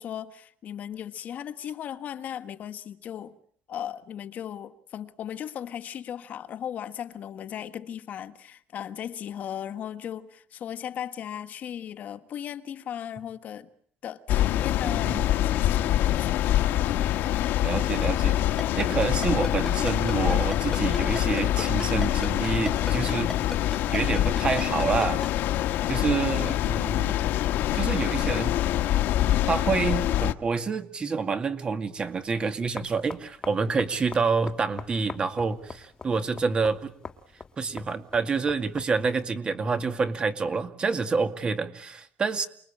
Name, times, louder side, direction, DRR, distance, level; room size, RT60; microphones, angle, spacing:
voice 1, 0.0-3.4 3.7-13.7 14.0-16.4, left 9 dB, 50° left, 1.6 m, -37 dB
sound 1, 14.3-30.3, left 13 dB, 70° left, 1.5 m, -25 dB
voice 2, 14.8-15.2 17.6-18.4 18.8-23.3 23.6-25.2 25.9-27.2 27.7-28.6 29.5-36.9 37.6-42.5, right 4 dB, 30° right, 2.2 m, -28 dB
Ringtone, 18.6-25.3, left 1 dB, 5° left, 1.6 m, -34 dB
sound 2, 32.0-39.3, left 4 dB, 20° left, 1.9 m, -44 dB
29.0 x 21.5 x 8.8 m
cardioid pair, 140°, 4 cm